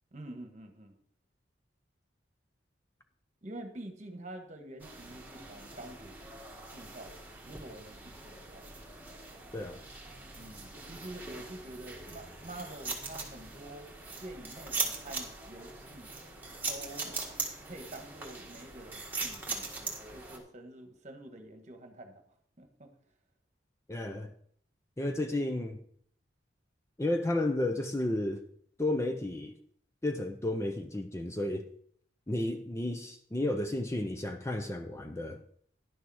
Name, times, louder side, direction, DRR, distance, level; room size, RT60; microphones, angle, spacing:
voice 1, 0.1-0.9 3.4-6.4 6.7-8.7 10.4-13.9 14.2-16.1 16.7-17.1 17.6-19.7 20.1-22.2 22.6-22.9, right 1 dB, 40° right, 1.3 m, -47 dB
sound 1, 4.8-20.4, right 3 dB, 10° right, 1.6 m, -41 dB
voice 2, 23.9-24.3 25.0-25.8 27.0-28.4 28.8-29.6 30.0-31.6 32.3-35.4, left 1 dB, 15° left, 0.5 m, -32 dB
11.0 x 6.6 x 4.8 m
head